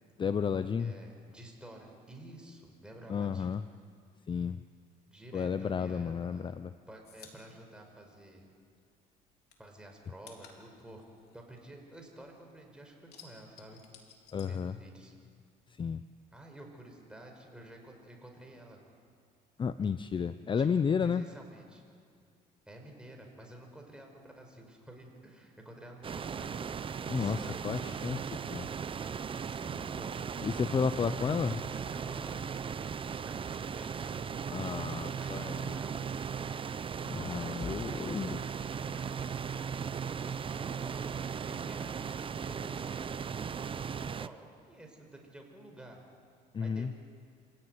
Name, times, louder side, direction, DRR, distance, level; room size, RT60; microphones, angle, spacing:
voice 1, 0.2-0.9 3.1-3.7 4.3-4.6 5.3-6.7 14.3-14.8 15.7-16.0 19.6-21.2 27.0-28.7 30.4-31.6 34.5-35.8 37.1-38.4 46.5-46.9, left 6 dB, 30° left, 12 dB, 0.6 m, -32 dB
voice 2, 0.8-3.6 5.1-6.5 6.9-8.4 9.6-11.0 11.3-13.0 13.2-13.8 14.4-15.1 16.3-18.8 20.6-20.7 21.0-21.8 22.7-26.5 27.1-28.0 29.4-30.2 31.7-32.4 33.2-34.2 34.8-35.9 37.5-38.3 38.9-39.1 40.3-41.0 41.3-43.2 44.2-46.0 46.6-46.9, right 1 dB, 5° right, 1 dB, 5.5 m, -51 dB
sound 1, 6.4-8.8 9.1-12.4 12.7-15.3 15.6-16.7, left 6 dB, 70° left, 3.6 m, -57 dB
sound 2, 26.0-44.3, right 6 dB, 30° right, 0.7 m, -37 dB
26.5 x 17.0 x 9.7 m, 2.3 s
cardioid pair, 110°, 17 cm